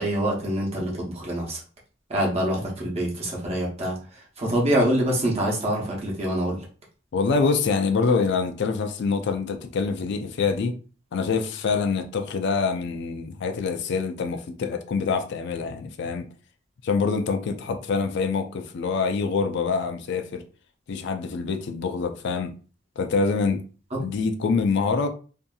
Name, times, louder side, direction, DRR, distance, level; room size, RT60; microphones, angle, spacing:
voice 1, 0.0-1.6 2.1-4.0 4.4-6.6 23.9-24.0, right 1 dB, 30° right, 0.8 m, -25 dB
voice 2, 7.1-10.8 11.1-16.2 16.8-20.4 20.9-22.5 23.0-23.6 24.0-25.1, left 4 dB, 60° left, 0.4 m, -25 dB
2.6 x 2.5 x 2.3 m
head